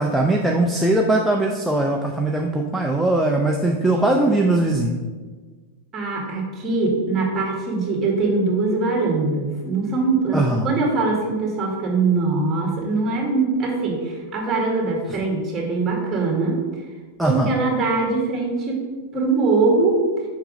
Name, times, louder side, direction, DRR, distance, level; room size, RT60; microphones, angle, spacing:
voice 1, 0.0-5.0 10.3-10.7 15.1-15.2 17.2-17.5, right 2 dB, 5° right, 0 dB, 0.5 m, -20 dB
voice 2, 5.9-16.6 17.3-18.8 19.1-20.0, right 3 dB, 25° right, -1 dB, 2.1 m, -22 dB
5.1 x 4.6 x 5.2 m, 1.4 s
hypercardioid pair, 115°, 0 cm